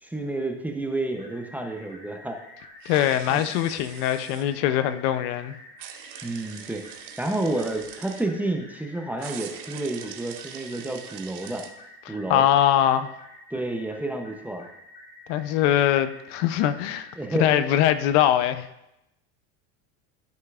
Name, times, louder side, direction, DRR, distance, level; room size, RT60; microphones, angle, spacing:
voice 1, 0.0-2.4 3.3-3.4 6.2-6.9 7.2-11.6 12.1-12.4 13.5-14.7 17.2-17.6, right 2 dB, 5° right, 0.6 m, -30 dB
sound 1, 1.1-18.1, left 1 dB, 30° left, 2.1 m, -48 dB
sound 2, 2.8-4.5 5.8-8.3 9.2-11.7, right 10 dB, 85° right, 1.0 m, -43 dB
voice 2, 2.9-5.5 12.1-13.1 15.3-17.1 17.4-18.7, left 11 dB, 65° left, 0.6 m, -22 dB
13.0 x 5.5 x 2.4 m
supercardioid pair, 135°, 37 cm